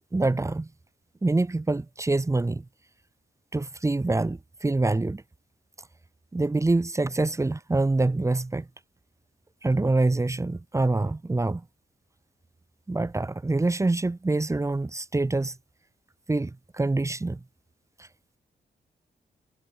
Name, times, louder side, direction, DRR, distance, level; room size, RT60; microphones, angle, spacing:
voice 1, 0.1-0.7 1.2-2.7 3.5-5.2 6.3-8.7 9.6-11.6 12.9-15.6 16.3-17.4 18.0-18.1, right 2 dB, 15° right, 2.0 m, -25 dB
wide cardioid pair, 155°, 18 cm